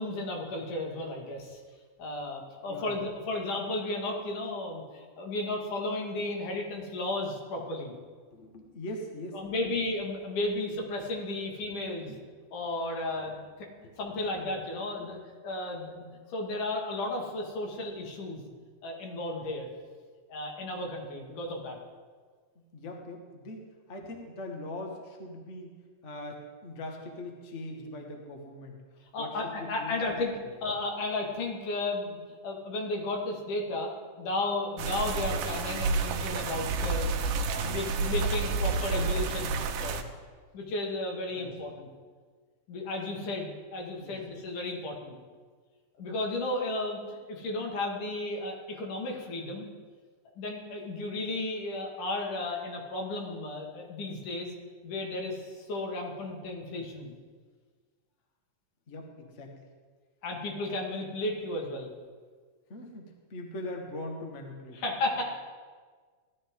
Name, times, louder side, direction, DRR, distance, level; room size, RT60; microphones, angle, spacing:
voice 1, 0.0-1.6 2.0-7.9 9.3-12.1 12.5-13.7 14.0-15.2 15.4-16.0 16.3-18.5 18.8-19.7 20.3-21.8 29.1-30.3 30.6-32.2 32.4-33.9 34.2-37.2 37.5-40.0 40.5-41.9 42.7-45.1 46.0-49.7 50.4-54.5 54.8-57.1 60.2-61.9 64.7-65.2, left 2 dB, 70° left, 0 dB, 3.4 m, -34 dB
voice 2, 2.7-3.1 8.3-9.4 12.1-12.2 13.8-14.0 15.0-15.2 22.7-25.8 26.0-28.8 29.2-30.5 37.5-38.1 38.9-39.2 39.8-40.2 41.3-41.5 44.0-44.2 58.9-59.5 62.7-64.8, left 1 dB, 45° left, 2 dB, 0.9 m, -42 dB
sound 1, 34.8-40.0, right 4 dB, 80° right, 2.4 m, -30 dB
17.0 x 12.5 x 3.7 m, 1.6 s
omnidirectional pair, 3.8 m